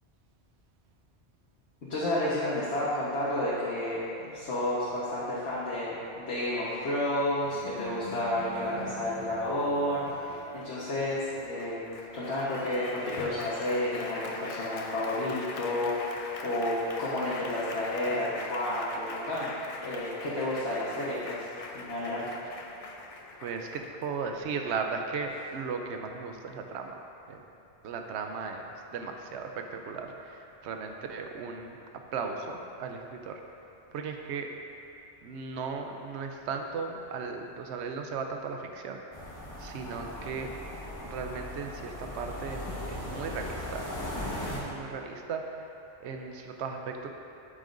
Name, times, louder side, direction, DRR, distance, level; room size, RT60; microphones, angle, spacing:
voice 1, 1.9-11.8 12.1-19.5 19.8-21.4 21.7-22.2, left 1 dB, 75° left, -9 dB, 1.5 m, -31 dB
Applause, 7.4-24.4, left 3 dB, 50° left, 0.4 m, -43 dB
voice 2, 23.4-27.0 27.3-27.4 27.8-28.6 28.9-31.8 32.1-33.4 33.9-34.5 35.2-39.0 39.6-40.5 41.0-43.8 44.5-45.6 46.0-47.1, right 5 dB, 80° right, 4 dB, 0.9 m, -36 dB
sound 1, 39.1-44.6, left 1 dB, 15° left, 1.3 m, -38 dB
9.0 x 8.3 x 2.5 m, 2.9 s
omnidirectional pair, 1.1 m